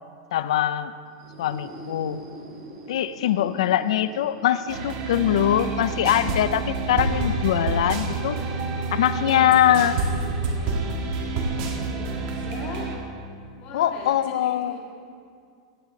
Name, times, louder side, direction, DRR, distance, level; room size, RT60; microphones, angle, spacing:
voice 1, 0.3-0.9 1.4-2.2 2.9-8.4 8.9-10.0 13.7-14.7, left 11 dB, 70° left, 14 dB, 0.5 m, -22 dB
sound 1, 1.0-8.7, equal, 55° right, 3.2 m, -46 dB
sound 2, 4.7-13.0, right 3 dB, 40° right, 1.4 m, -28 dB
voice 2, 11.9-12.9 13.6-14.8, left 4 dB, 35° left, -2 dB, 2.2 m, -39 dB
16.5 x 9.2 x 3.8 m, 2.3 s
supercardioid pair, 175°, 3 cm